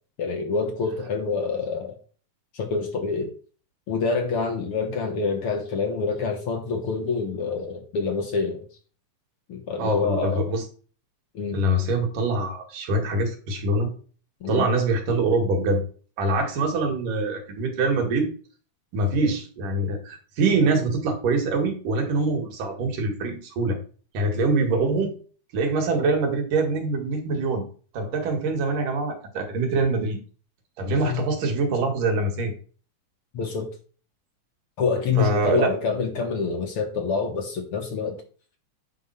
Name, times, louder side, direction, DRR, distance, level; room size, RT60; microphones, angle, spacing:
voice 1, 0.2-2.0 2.5-3.3 3.9-8.6 9.5-10.5 11.3-11.6 14.4-14.7 31.0-31.2 33.3-33.7 34.8-38.2, left 5 dB, 55° left, 3 dB, 1.9 m, -26 dB
voice 2, 9.8-10.6 11.5-13.9 14.5-15.8 16.2-18.3 18.9-23.8 24.1-25.1 25.5-27.6 27.9-30.2 30.8-32.5 35.2-35.7, right 3 dB, 90° right, 3 dB, 3.6 m, -24 dB
9.7 x 4.4 x 5.8 m, 0.39 s
omnidirectional pair, 3.6 m